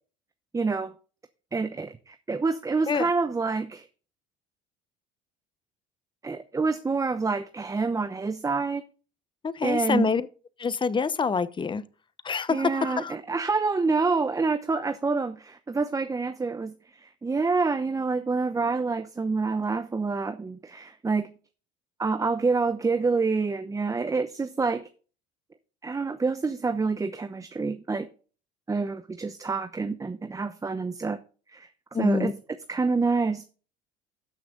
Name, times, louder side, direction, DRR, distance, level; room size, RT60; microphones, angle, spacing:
voice 1, 0.5-0.9 1.5-3.9 6.2-8.8 9.6-10.1 12.5-21.3 22.0-24.9 25.8-28.1 28.7-31.2 31.5-31.7 32.0-32.3 32.7-33.5, right 4 dB, 15° right, 0.8 m, -27 dB
voice 2, 9.4-10.3 10.6-11.8 12.2-13.1 31.9-32.3, left 5 dB, 25° left, 0.9 m, -26 dB
13.0 x 6.1 x 3.8 m
supercardioid pair, 85°, 19 cm